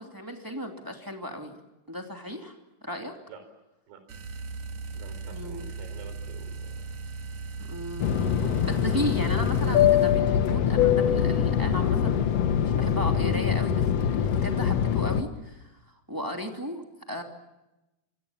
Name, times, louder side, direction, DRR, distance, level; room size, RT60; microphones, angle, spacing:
voice 1, 0.0-1.5 1.9-2.6 2.8-3.2 5.3-5.7 7.7-8.2 8.6-12.2 12.6-15.7 16.1-16.8 17.1-17.2, equal, 5° right, 3 dB, 1.7 m, -35 dB
sound 1, 4.1-10.1, right 4 dB, 50° right, 2.6 m, -38 dB
voice 2, 4.9-6.9 9.0-9.1, right 7 dB, 80° right, 8 dB, 6.4 m, -48 dB
Fixed-wing aircraft airplane, 8.0-15.2, left 9 dB, 70° left, 1.5 m, -23 dB
26.0 x 25.0 x 7.2 m, 0.97 s
omnidirectional pair, 4.7 m